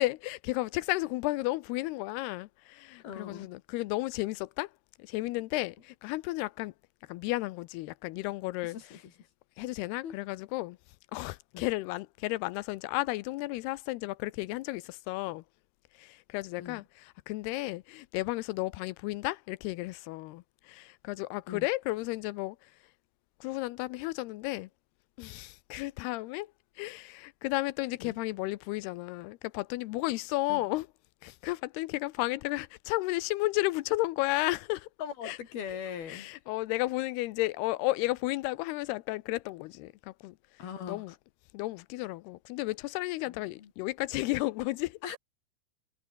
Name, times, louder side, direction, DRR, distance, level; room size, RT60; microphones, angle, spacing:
voice 1, 0.0-4.7 5.0-6.7 7.1-8.8 9.6-10.8 11.1-15.4 16.0-22.7 23.4-24.7 25.2-26.5 26.8-30.9 31.2-34.9 35.2-35.4 36.1-40.4 40.9-41.1 41.5-45.0, left 20 dB, 80° left, 2.5 m, -33 dB
voice 2, 3.0-3.5 8.6-9.0 10.0-10.2 11.5-11.7 16.6-16.9 21.5-21.7 28.0-28.2 30.5-30.6 35.0-36.3 40.6-41.0 43.3-43.7 45.0-45.2, left 8 dB, 65° left, 4.7 m, -40 dB
omnidirectional pair, 4.9 m